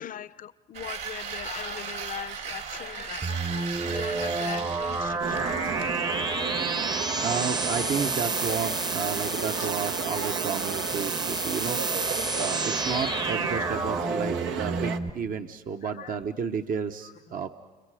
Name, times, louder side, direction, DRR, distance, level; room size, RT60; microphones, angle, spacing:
voice 1, 0.0-7.0 9.6-9.7 15.8-16.2 17.0-17.4, left 10 dB, 45° left, 16 dB, 0.7 m, -41 dB
sound 1, 0.7-5.9, right 6 dB, 65° right, 3.5 m, -37 dB
sound 2, 3.2-15.1, right 3 dB, 20° right, 0.9 m, -30 dB
sound 3, 5.2-15.0, right 7 dB, 85° right, 1.1 m, -34 dB
voice 2, 6.9-17.5, right 6 dB, 50° right, 6 dB, 1.0 m, -32 dB
29.5 x 29.0 x 4.9 m, 1.3 s
cardioid pair, 90°, 19 cm